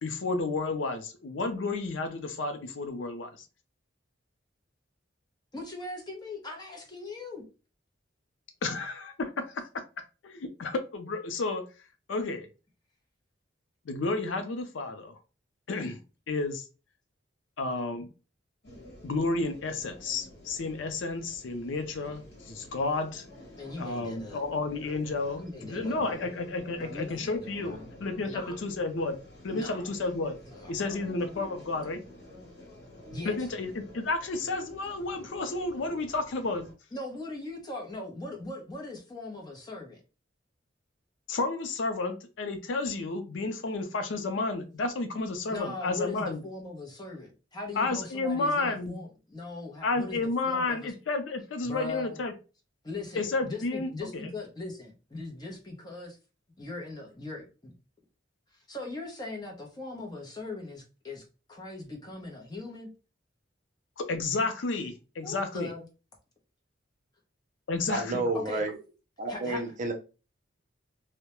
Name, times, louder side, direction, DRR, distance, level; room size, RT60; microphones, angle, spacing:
voice 1, 0.0-3.4 8.6-9.6 10.2-11.6 12.1-12.5 13.9-15.2 15.7-16.0 16.3-16.7 17.6-18.1 19.0-23.2 23.8-29.2 29.4-30.4 30.7-32.0 33.3-36.7 41.3-46.4 47.8-49.0 49.8-52.3 53.2-54.3 64.0-65.7 67.7-68.2, left 3 dB, 80° left, 7 dB, 0.5 m, -31 dB
voice 2, 5.5-7.4 23.5-24.4 25.4-26.3 26.7-27.9 28.2-28.5 29.5-29.8 30.5-31.1 33.1-33.4 36.9-40.0 45.5-50.9 51.6-52.2 52.8-56.2 56.6-57.7 58.7-62.9 65.2-65.9 68.3-68.6 69.3-69.6, left 2 dB, 20° left, 0 dB, 0.7 m, -40 dB
sound 1, 18.6-36.7, left 1 dB, 60° left, 1.1 m, -49 dB
voice 3, 67.9-68.8 69.2-69.9, right 2 dB, 40° right, 3 dB, 0.5 m, -30 dB
2.2 x 2.1 x 2.9 m, 0.32 s
head